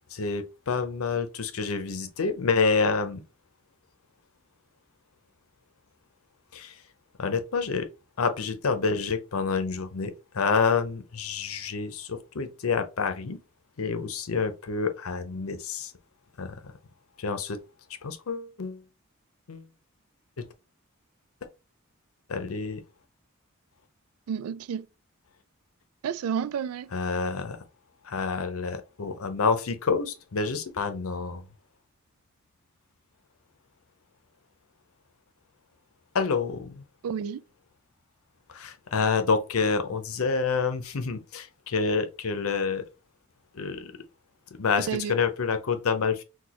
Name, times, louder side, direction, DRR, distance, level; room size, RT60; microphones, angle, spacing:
voice 1, 0.1-3.2 6.5-6.8 7.2-7.9 8.2-13.4 13.8-15.9 16.4-16.7 17.2-17.6 18.0-18.8 19.5-19.7 20.4-20.5 22.3-22.8 26.9-27.6 28.0-31.4 36.1-36.8 38.5-42.9 43.5-44.0 44.6-46.2, left 5 dB, 80° left, 0.7 m, -28 dB
voice 2, 24.3-24.9 26.0-26.9 37.0-37.4 44.9-45.1, right 7 dB, 90° right, 0.3 m, -30 dB
6.1 x 2.3 x 2.9 m
head